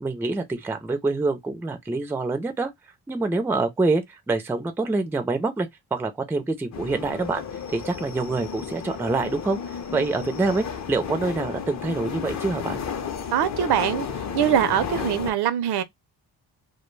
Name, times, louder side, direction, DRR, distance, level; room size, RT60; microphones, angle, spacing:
voice 1, 0.0-2.7 3.1-7.4 7.7-12.8, right 3 dB, 5° right, 0.3 m, -26 dB
sound 1, 6.7-15.3, left 7 dB, 45° left, 0.5 m, -33 dB
voice 2, 13.3-14.1 14.3-15.8, right 10 dB, 70° right, 0.5 m, -22 dB
2.2 x 2.1 x 3.1 m
wide cardioid pair, 140°, 41 cm